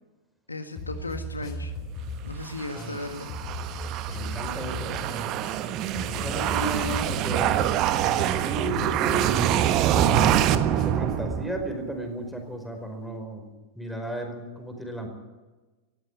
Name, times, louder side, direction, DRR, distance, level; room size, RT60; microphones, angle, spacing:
voice 1, 0.5-1.7 2.2-3.3, left 2 dB, 80° left, 7 dB, 1.8 m, -35 dB
sound 1, 0.8-11.4, left 1 dB, 35° left, 4.9 m, -37 dB
sound 2, 2.5-11.8, right 11 dB, 40° right, 1.2 m, -25 dB
voice 2, 4.1-5.3 6.1-9.9 10.8-15.1, equal, ahead, 4 dB, 4.9 m, -35 dB
18.5 x 15.0 x 9.9 m, 1.2 s
figure-of-eight pair, 90°, 0 cm